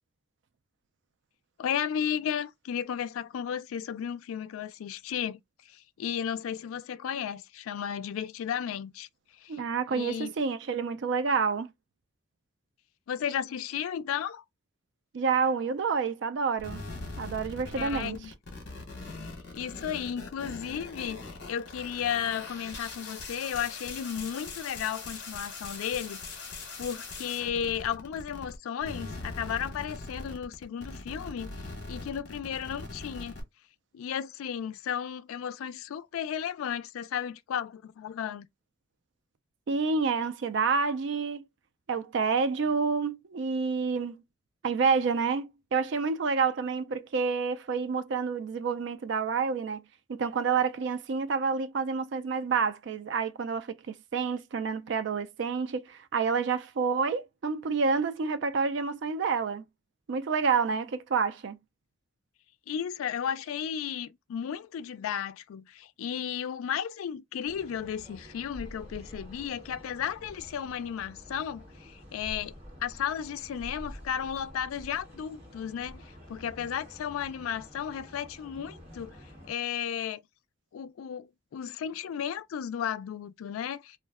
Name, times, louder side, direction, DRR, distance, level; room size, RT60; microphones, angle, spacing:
voice 1, 1.6-5.4 5.7-9.1 9.4-9.6 9.9-10.3 13.1-14.4 17.7-18.3 19.1-26.5 26.8-33.4 33.9-38.5 62.7-72.5 72.8-79.2 79.5-80.2 80.7-84.0, left 8 dB, 85° left, 0.3 m, -34 dB
voice 2, 9.5-11.7 15.1-16.8 17.2-18.2 39.7-41.4 41.9-44.2 44.6-49.8 50.1-59.6 60.1-61.6, right 5 dB, 60° right, 0.3 m, -28 dB
sound 1, 16.6-28.6 28.8-33.4, left 3 dB, 55° left, 1.0 m, -41 dB
sound 2, 67.4-79.5, equal, 30° right, 1.3 m, -48 dB
2.4 x 2.1 x 3.4 m
head